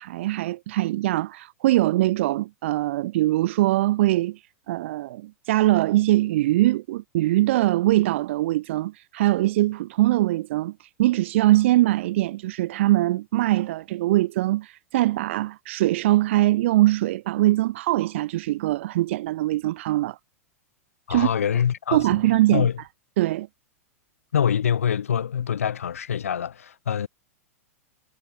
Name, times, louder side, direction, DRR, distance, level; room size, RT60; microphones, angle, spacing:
voice 1, 0.0-4.4 4.7-20.2 21.1-21.3 21.9-22.7 23.2-23.5, right 16 dB, 55° right, 0.5 m, -22 dB
voice 2, 21.1-22.1 22.5-22.8 24.3-27.1, left 8 dB, 70° left, 2.2 m, -24 dB
figure-of-eight pair, 95°, 8 cm